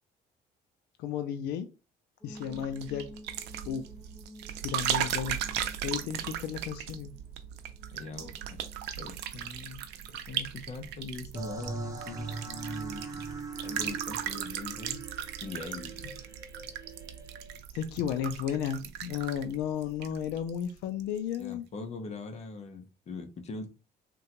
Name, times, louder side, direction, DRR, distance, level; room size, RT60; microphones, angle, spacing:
voice 1, 1.0-1.7 2.2-3.1 3.7-3.8 4.6-5.4 5.8-7.1 16.0-16.1 17.7-21.6, left 9 dB, 85° left, 8 dB, 0.4 m, -33 dB
sound 1, 2.2-15.2, left 1 dB, 20° left, 1.1 m, -54 dB
sound 2, 2.4-20.7 21.0-21.4, right 10 dB, 85° right, 0.5 m, -37 dB
voice 2, 7.9-8.6 9.0-9.8 10.3-13.3 13.6-15.0 15.4-16.0 21.4-23.7, left 3 dB, 40° left, 6 dB, 0.7 m, -42 dB
sound 3, 11.3-17.6, right 4 dB, 20° right, 0.6 m, -41 dB
3.5 x 2.2 x 2.9 m, 0.30 s
cardioid pair, 110°, 17 cm